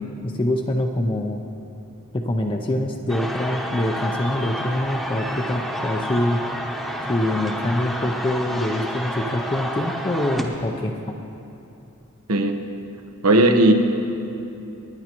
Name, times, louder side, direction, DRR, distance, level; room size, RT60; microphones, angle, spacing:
voice 1, 0.2-1.4 2.1-6.4 7.1-11.2, left 1 dB, 25° left, 3 dB, 0.5 m, -25 dB
sound 1, 3.1-10.4, equal, ahead, 1.0 m, -29 dB
voice 2, 12.3-12.6 13.2-13.7, right 1 dB, 80° right, 6 dB, 1.0 m, -16 dB
25.5 x 10.5 x 3.0 m, 2.9 s
head